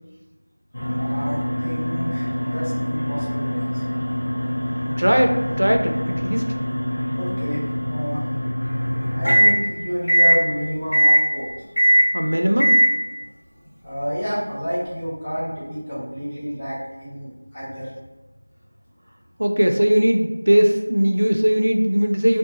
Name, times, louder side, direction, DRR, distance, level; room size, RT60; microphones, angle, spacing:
sound 1, 0.7-9.6 10.1-10.4 10.9-11.2 11.8-12.1 12.6-12.9, equal, 45° left, 1.0 m, -21 dB
voice 1, 1.0-4.0 7.2-8.2 9.1-11.5 13.8-17.9, equal, 5° left, -15 dB, 0.5 m, -29 dB
voice 2, 5.0-6.4 12.1-12.8 19.4-22.4, equal, 70° right, 3 dB, 0.3 m, -19 dB
2.8 x 2.1 x 2.6 m, 1.1 s
figure-of-eight pair, 175°, 0 cm